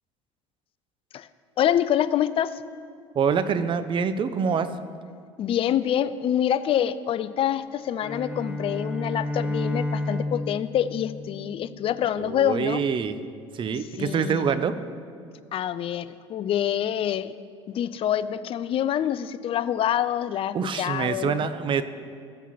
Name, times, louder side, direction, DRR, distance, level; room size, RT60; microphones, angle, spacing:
voice 1, 1.6-2.6 5.4-12.8 14.0-14.6 15.5-17.3 17.7-21.4, left 10 dB, 40° left, 15 dB, 0.4 m, -26 dB
voice 2, 3.2-4.7 12.2-13.2 13.5-14.8 20.5-21.8, right 6 dB, 35° right, 12 dB, 0.5 m, -25 dB
Bowed string instrument, 8.0-12.2, left 1 dB, 10° right, 1.1 m, -31 dB
14.0 x 8.2 x 2.9 m, 2.3 s
figure-of-eight pair, 65°, 15 cm